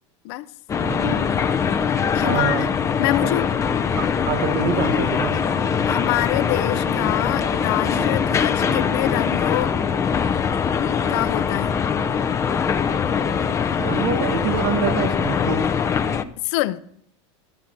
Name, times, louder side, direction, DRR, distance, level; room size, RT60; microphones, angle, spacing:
sound 1, 0.7-16.2, left 7 dB, 20° left, 0.6 m, -22 dB
voice 1, 0.8-1.2 2.2-2.7 3.9-5.4 13.8-15.7, right 7 dB, 55° right, 1.1 m, -26 dB
voice 2, 2.1-2.7 3.0-3.5 5.9-9.7 11.1-11.7 16.4-16.8, left 17 dB, 60° left, 0.7 m, -25 dB
13.0 x 6.0 x 6.4 m
supercardioid pair, 130°, 15 cm